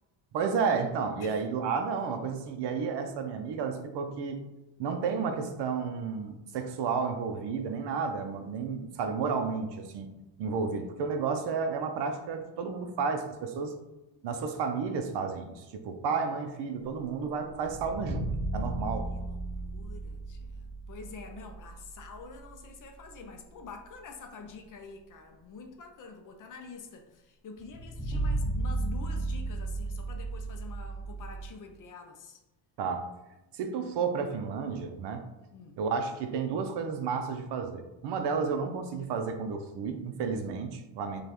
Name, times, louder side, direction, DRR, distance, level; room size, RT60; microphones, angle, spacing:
voice 1, 0.3-4.4 4.8-10.1 10.4-13.7 14.2-19.1 32.8-33.1 33.5-35.2 35.8-41.2, right 5 dB, 60° right, 6 dB, 0.5 m, -32 dB
sound 1, 17.5-22.2 22.5-22.6 27.6-31.5, right 2 dB, 10° right, 1.2 m, -34 dB
voice 2, 19.1-19.4 19.6-32.4 35.5-35.8, left 4 dB, 45° left, 4 dB, 0.4 m, -47 dB
5.0 x 2.3 x 2.9 m, 1.0 s
cardioid pair, 160°, 49 cm